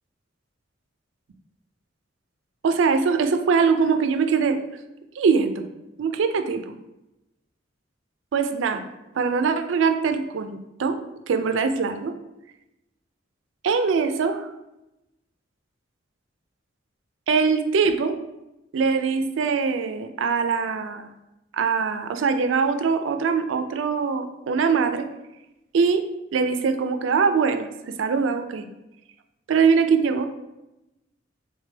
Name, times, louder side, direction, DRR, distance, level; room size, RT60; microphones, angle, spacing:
voice 1, 2.6-4.6 5.2-5.7 6.0-6.7 8.3-8.8 9.1-11.0 11.3-12.1 13.6-14.5 17.3-18.2 18.7-21.1 21.5-25.1 25.7-26.0 26.3-27.7 28.0-28.7 29.5-30.3, right 5 dB, 80° right, 8 dB, 0.4 m, -22 dB
3.3 x 3.2 x 3.3 m, 0.95 s
head